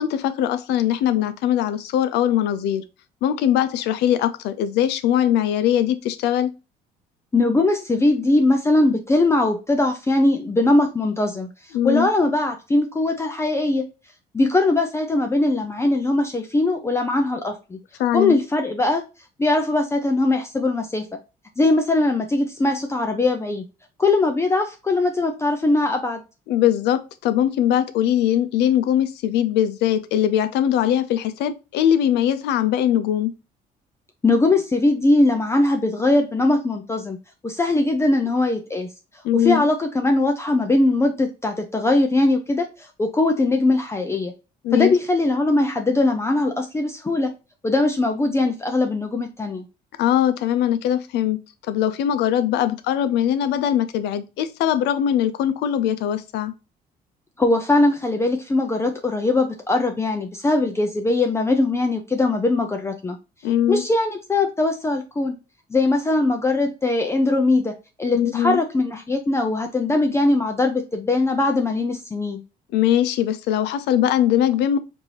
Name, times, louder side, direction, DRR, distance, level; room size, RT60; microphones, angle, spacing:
voice 1, 0.0-2.8 3.2-6.5 11.7-12.1 18.0-18.4 26.5-33.3 39.2-39.7 44.6-44.9 50.0-51.4 51.7-56.5 63.4-63.8 68.1-68.6 72.7-74.8, left 10 dB, 80° left, 0.5 m, -21 dB
voice 2, 7.3-11.5 11.8-13.8 14.3-17.8 18.1-19.0 19.4-21.1 21.6-23.7 24.0-26.2 34.2-37.2 37.4-38.9 39.3-44.3 44.7-47.3 47.6-49.6 57.4-63.2 63.7-65.3 65.7-72.4, left 2 dB, 15° left, 0.4 m, -20 dB
4.5 x 2.6 x 2.8 m
cardioid pair, 110°, 17 cm